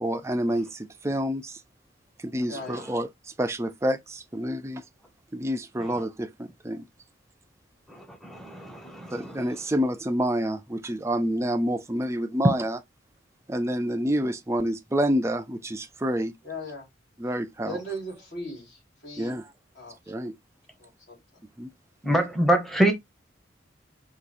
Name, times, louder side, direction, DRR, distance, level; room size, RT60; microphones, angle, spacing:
voice 1, 0.0-1.6 2.2-3.1 3.4-4.8 5.3-6.9 9.1-12.8 13.5-16.3 17.2-17.8 19.2-19.4 20.1-20.3 21.6-21.7, equal, 15° right, 0.4 m, -28 dB
voice 2, 2.5-2.9 16.4-16.9 17.6-19.4 19.7-20.0 20.8-21.2, equal, 60° left, 3.0 m, -38 dB
voice 3, 7.9-9.3 22.0-22.9, right 1 dB, ahead, 0.9 m, -25 dB
4.7 x 2.5 x 4.2 m
head